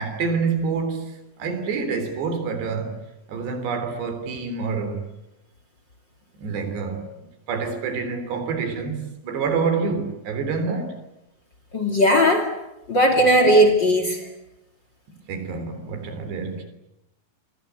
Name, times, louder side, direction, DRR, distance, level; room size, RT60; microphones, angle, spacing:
voice 1, 0.0-3.0 3.3-5.1 6.4-7.1 7.5-10.9 13.1-13.2 15.3-16.7, right 5 dB, 85° right, 5.7 m, -27 dB
voice 2, 11.7-12.5 12.9-14.2, equal, 30° left, 2.5 m, -17 dB
29.0 x 24.5 x 8.2 m
omnidirectional pair, 4.7 m